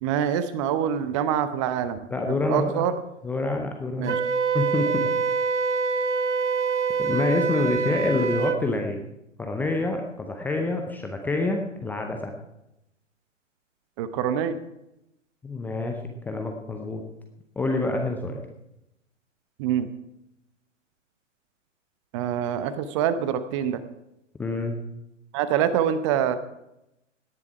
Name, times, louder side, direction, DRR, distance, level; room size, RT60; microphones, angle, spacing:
voice 1, 0.0-2.0 2.3-2.9 4.0-4.2 14.0-14.6 19.6-19.9 22.1-23.8 25.3-26.4, right 9 dB, 25° right, 12 dB, 0.8 m, -25 dB
voice 2, 2.1-2.8 3.2-4.2 4.5-5.1 7.0-9.1 9.4-12.3 15.4-16.0 16.3-17.0 17.6-18.4 24.4-24.8, left 2 dB, 5° left, 3 dB, 0.6 m, -27 dB
Wind instrument woodwind instrument, 4.1-8.6, right 4 dB, 65° right, 1.2 m, -25 dB
17.5 x 11.0 x 4.7 m, 0.87 s
figure-of-eight pair, 120°, 38 cm